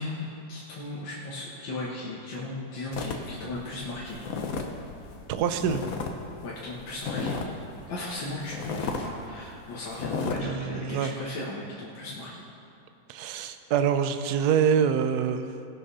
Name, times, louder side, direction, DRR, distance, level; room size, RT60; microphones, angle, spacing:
voice 1, 0.0-4.3 6.4-7.4 7.9-12.4, left 2 dB, 80° left, -5 dB, 2.2 m, -36 dB
sound 1, 2.9-6.1 6.4-7.6 8.0-8.1 8.5-9.1 9.4-9.6 9.9-10.4, left 4 dB, 55° left, 1.3 m, -33 dB
voice 2, 5.3-5.8 10.4-11.1 13.1-15.5, right 7 dB, 65° right, 9 dB, 1.1 m, -25 dB
18.5 x 6.4 x 5.5 m, 2.9 s
omnidirectional pair, 2.0 m